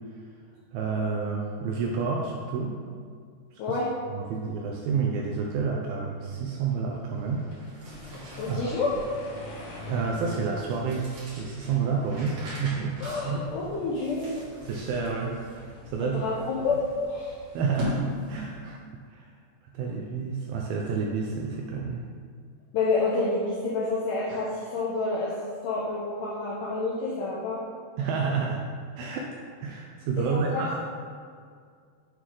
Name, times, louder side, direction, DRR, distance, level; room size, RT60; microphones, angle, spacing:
voice 1, 0.7-2.8 3.7-3.8 4.1-7.9 8.5-8.8 9.9-13.0 13.3-13.5 14.7-15.4 15.9-16.2 17.5-18.8 19.1-19.3 19.7-22.0 28.0-28.6 29.0-29.3 29.6-30.8, right 5 dB, 80° right, -1 dB, 2.1 m, -29 dB
sound 1, 7.0-13.1, equal, 60° left, 1.9 m, -44 dB
sound 2, 7.6-18.7, left 1 dB, 50° right, 2.4 m, -40 dB
voice 2, 8.4-9.0 13.0-14.3 16.0-17.4 22.7-25.3 25.6-27.6 30.2-30.8, left 3 dB, 80° left, -6 dB, 1.9 m, -28 dB
8.5 x 3.7 x 4.7 m, 2.1 s
omnidirectional pair, 4.8 m